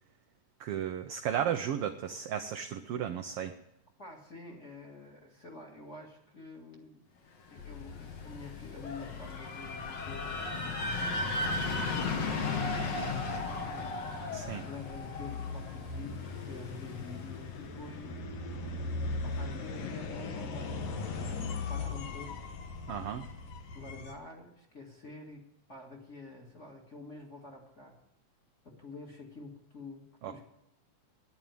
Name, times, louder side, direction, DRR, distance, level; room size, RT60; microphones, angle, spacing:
voice 1, 0.6-3.5 14.3-14.6 22.9-23.2 30.2-30.4, right 9 dB, 85° right, 7 dB, 1.3 m, -34 dB
voice 2, 4.0-7.0 7.4-11.7 12.0-18.9 19.2-20.9 21.2-22.4 23.7-28.0 28.6-30.4, left 2 dB, 25° left, 0 dB, 1.9 m, -48 dB
sound 1, 7.6-24.1, left 4 dB, 65° left, 2.3 m, -41 dB
sound 2, 7.6-17.4, left 3 dB, 50° left, 1.6 m, -36 dB
10.5 x 9.8 x 9.2 m, 0.82 s
omnidirectional pair, 3.4 m